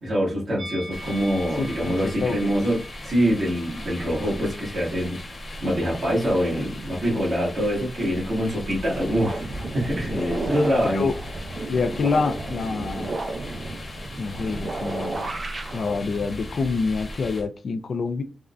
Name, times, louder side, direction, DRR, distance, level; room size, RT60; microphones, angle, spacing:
voice 1, 0.0-5.2 5.6-9.5 9.7-11.1, equal, 65° right, 1.4 m, -24 dB
Musical instrument, 0.6-5.8 6.1-6.3, equal, 85° right, 0.9 m, -43 dB
sound 1, 0.9-17.4, left 1 dB, 45° left, 0.9 m, -39 dB
voice 2, 1.6-2.5 10.1-10.4 10.8-11.1 11.7-13.2 14.2-15.4 15.7-18.2, left 4 dB, 65° left, 0.3 m, -27 dB
sound 2, 8.6-17.4, right 2 dB, 45° right, 0.4 m, -33 dB
3.5 x 2.1 x 2.4 m
wide cardioid pair, 130°, 0 cm